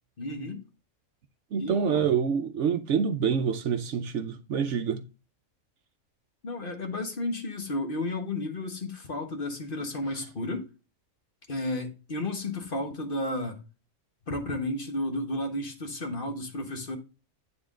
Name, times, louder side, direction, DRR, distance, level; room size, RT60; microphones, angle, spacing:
voice 1, 0.2-0.6 1.6-2.1 6.4-10.7 11.5-13.6 14.3-17.0, left 1 dB, 40° left, 1.3 m, -32 dB
voice 2, 1.5-5.0, right 7 dB, 65° right, 0.9 m, -26 dB
9.6 x 3.8 x 3.7 m
omnidirectional pair, 1.4 m